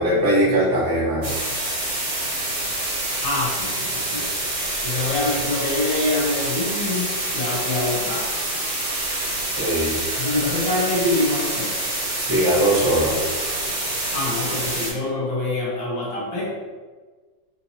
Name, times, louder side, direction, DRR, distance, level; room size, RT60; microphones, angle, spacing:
voice 1, 0.0-1.3 9.6-10.0 12.2-13.2, right 1 dB, 20° right, -7 dB, 0.7 m, -20 dB
sound 1, 1.2-14.9, right 1 dB, 40° right, 1.4 m, -26 dB
voice 2, 3.2-4.3 4.8-8.3 10.2-11.7 13.5-16.6, left 2 dB, 80° left, -5 dB, 1.8 m, -25 dB
5.1 x 2.8 x 2.7 m, 1.4 s
omnidirectional pair, 2.0 m